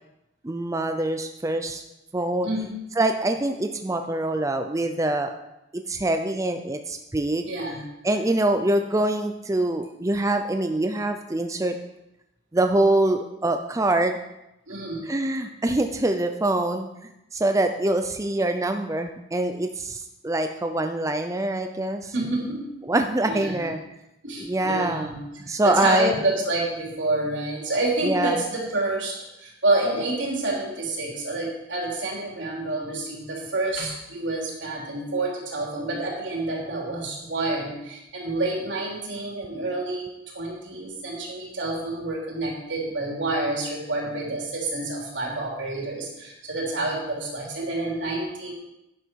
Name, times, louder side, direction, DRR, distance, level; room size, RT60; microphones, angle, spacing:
voice 1, 0.4-1.8 2.1-2.5 3.0-5.3 5.7-7.5 8.0-11.8 12.5-14.2 15.1-16.9 17.3-22.1 22.9-23.8 24.4-25.1 25.5-26.1 28.0-28.4, right 1 dB, 15° right, 6 dB, 0.5 m, -24 dB
voice 2, 7.5-7.8 14.7-15.1 22.1-22.7 23.3-23.7 24.2-48.5, right 2 dB, 80° right, -2 dB, 3.5 m, -28 dB
10.5 x 9.8 x 4.6 m, 0.90 s
head